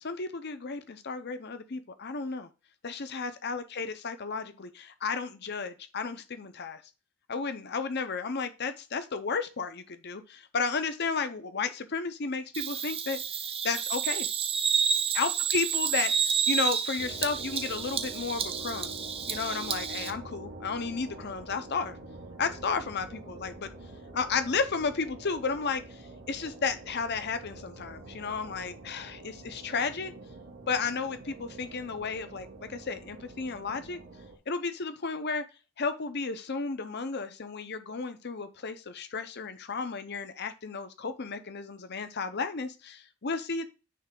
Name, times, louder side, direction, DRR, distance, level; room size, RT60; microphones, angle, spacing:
voice 1, 0.0-2.5 2.8-6.8 7.3-13.2 13.6-14.3 15.1-18.9 19.3-22.0 22.4-23.7 24.1-26.0 26.3-30.1 30.7-34.0 34.5-35.4 35.8-43.7, left 5 dB, 50° left, 10 dB, 0.7 m, -33 dB
Bird vocalization bird call bird song, 12.5-20.1, right 7 dB, 25° right, 0.6 m, -30 dB
sound 1, 17.0-34.4, right 2 dB, 75° right, 2.5 m, -46 dB
9.3 x 3.3 x 3.7 m, 0.32 s
head